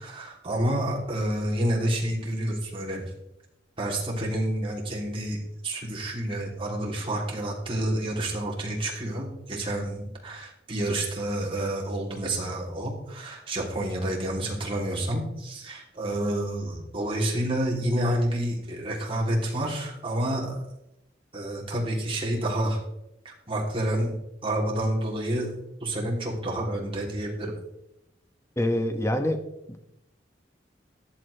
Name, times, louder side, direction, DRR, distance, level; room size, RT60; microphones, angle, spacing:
voice 1, 0.0-3.0 3.8-5.4 5.6-20.6 21.3-22.8 23.2-24.1 24.4-25.5 25.8-27.5, right 1 dB, 30° right, -2 dB, 3.0 m, -29 dB
voice 2, 28.6-29.4 29.7-29.9, left 1 dB, 15° left, 7 dB, 1.0 m, -26 dB
14.5 x 10.5 x 3.3 m, 0.86 s
head